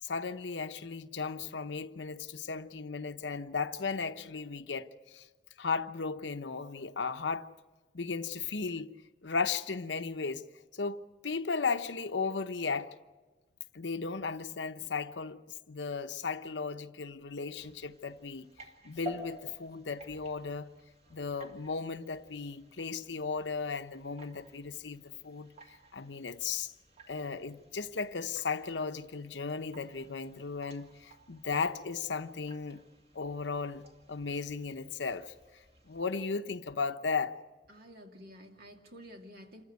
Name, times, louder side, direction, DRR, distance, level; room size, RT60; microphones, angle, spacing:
voice 1, 0.0-5.3 5.6-7.5 7.9-8.9 9.2-10.5 10.7-12.9 13.7-18.5 18.8-20.7 21.1-26.7 27.1-32.8 33.1-35.3 35.8-37.3, left 4 dB, 80° left, 0.9 m, -36 dB
sound 1, 17.6-36.3, right 1 dB, 35° right, 2.3 m, -54 dB
voice 2, 37.7-39.6, equal, 60° right, 2.6 m, -51 dB
27.5 x 14.5 x 9.4 m
head